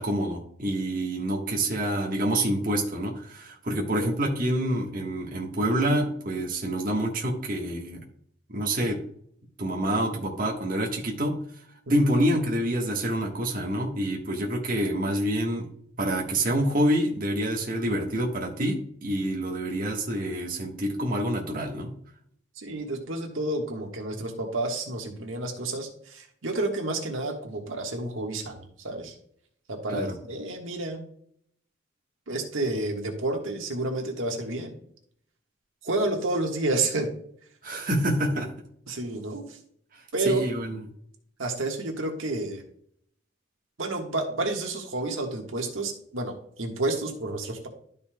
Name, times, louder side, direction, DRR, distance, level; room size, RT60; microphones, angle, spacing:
voice 1, 0.0-8.0 8.5-9.0 9.6-11.4 11.9-15.7 16.0-21.9 29.9-30.1 37.6-38.5 39.9-40.9, right 1 dB, 45° right, -1 dB, 1.4 m, -27 dB
voice 2, 22.6-29.1 29.7-31.0 32.3-34.8 35.8-37.1 38.9-39.6 40.1-40.4 41.4-42.6 43.8-47.7, right 2 dB, 85° right, 1 dB, 1.5 m, -30 dB
12.5 x 5.4 x 2.3 m, 0.65 s
head